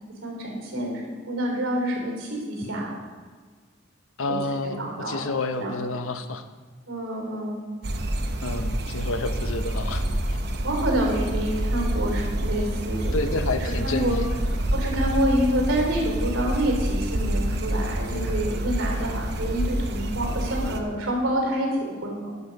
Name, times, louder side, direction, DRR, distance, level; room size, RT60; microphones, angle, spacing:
voice 1, 0.2-2.9 4.3-4.4 4.8-5.2 5.6-5.8 6.9-7.6 10.6-13.3 13.6-14.2 14.7-22.3, right 1 dB, 75° right, -1 dB, 3.4 m, -27 dB
voice 2, 4.2-6.4 8.4-10.4 13.1-14.4 18.1-18.4, left 2 dB, 85° left, 9 dB, 0.7 m, -30 dB
sound 1, 7.8-20.8, right 1 dB, 50° right, 0.8 m, -27 dB
11.0 x 6.1 x 5.2 m, 1.5 s
head